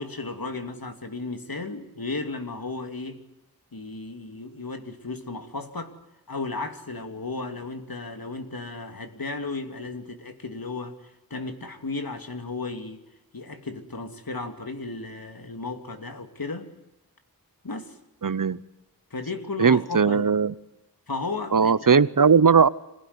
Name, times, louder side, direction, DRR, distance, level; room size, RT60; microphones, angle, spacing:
voice 1, 0.0-3.2 3.7-6.0 6.3-13.0 13.3-16.7 17.6-18.0 19.1-20.3 21.1-21.7, left 3 dB, 75° left, 6 dB, 2.7 m, -34 dB
voice 2, 18.2-18.6 19.6-20.5 21.5-22.7, right 6 dB, 60° right, 18 dB, 0.9 m, -18 dB
26.5 x 17.0 x 9.7 m, 0.91 s
wide cardioid pair, 50°, 36 cm